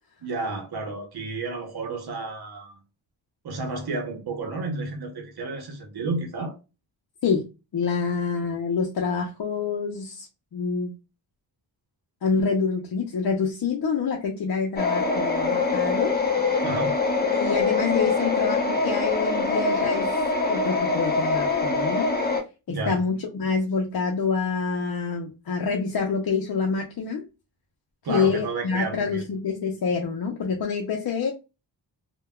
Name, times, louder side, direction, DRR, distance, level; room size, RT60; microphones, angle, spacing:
voice 1, 0.2-2.8 3.4-6.6 16.6-16.9 22.7-23.0 28.0-29.2, right 3 dB, 60° right, 0.8 m, -31 dB
voice 2, 7.7-10.3 10.5-10.9 12.2-16.1 17.3-20.2 20.5-22.1 22.7-27.2 28.1-31.3, left 5 dB, 55° left, 0.6 m, -27 dB
sound 1, 14.8-22.4, left 3 dB, 20° left, 0.7 m, -24 dB
3.3 x 2.2 x 2.3 m
cardioid pair, 70°, 44 cm